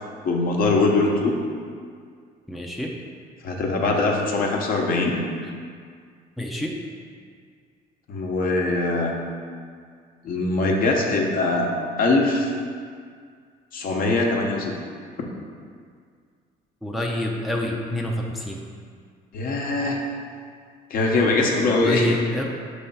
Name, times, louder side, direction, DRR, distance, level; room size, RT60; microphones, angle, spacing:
voice 1, 0.2-1.4 3.4-5.2 8.1-9.2 10.2-11.7 12.0-12.5 13.7-14.7 19.3-20.0 20.9-22.1, left 3 dB, 60° left, 0 dB, 0.9 m, -22 dB
voice 2, 2.5-2.9 6.4-6.8 16.8-18.6 21.8-22.5, left 1 dB, ahead, -1 dB, 0.5 m, -27 dB
5.3 x 3.4 x 5.5 m, 2.1 s
cardioid pair, 110°, 17 cm